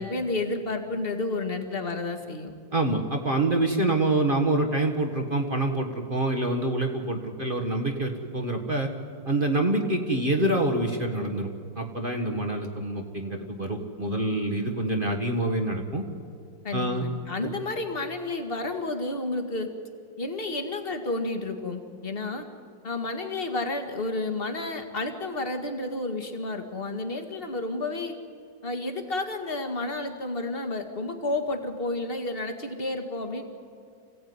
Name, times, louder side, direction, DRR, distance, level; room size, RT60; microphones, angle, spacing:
voice 1, 0.0-2.5 16.6-19.7 20.2-22.5 22.8-28.1 28.6-33.4, left 2 dB, 30° left, 6 dB, 2.0 m, -31 dB
voice 2, 2.7-8.9 9.2-11.5 11.7-16.0 16.7-17.0, right 2 dB, 30° right, 3 dB, 1.7 m, -26 dB
26.0 x 16.5 x 9.7 m, 2.4 s
omnidirectional pair, 2.0 m